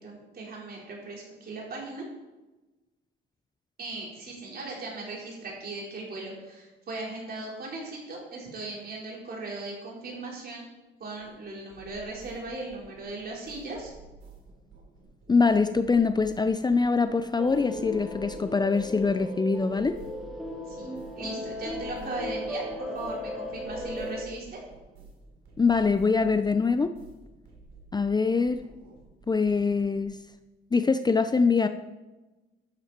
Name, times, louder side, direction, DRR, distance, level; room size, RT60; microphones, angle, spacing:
voice 1, 0.0-2.0 3.8-10.7 11.0-13.9 20.7-24.6, right 2 dB, 50° right, -3 dB, 4.8 m, -38 dB
sound 1, 11.2-30.2, right 3 dB, 80° right, 3.5 m, -51 dB
voice 2, 15.3-20.0 25.6-26.9 27.9-28.6 29.3-30.2 30.7-31.7, left 4 dB, 20° left, 10 dB, 0.5 m, -24 dB
sound 2, 17.4-24.2, left 1 dB, ahead, 2.4 m, -36 dB
12.5 x 9.0 x 4.4 m, 1.1 s
cardioid pair, 90°, 20 cm